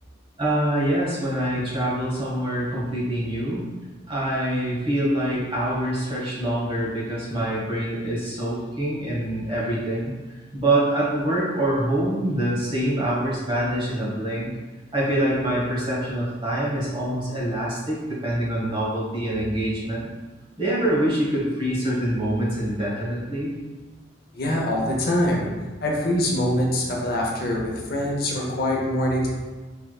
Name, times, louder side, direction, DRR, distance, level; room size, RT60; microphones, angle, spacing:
voice 1, 0.4-3.6 4.1-10.1 10.5-14.5 14.9-20.1 20.6-23.5, right 1 dB, 30° right, -6 dB, 1.2 m, -25 dB
voice 2, 24.3-25.5 25.8-29.3, left 1 dB, 55° left, -2 dB, 0.7 m, -24 dB
4.5 x 3.4 x 2.3 m, 1.3 s
head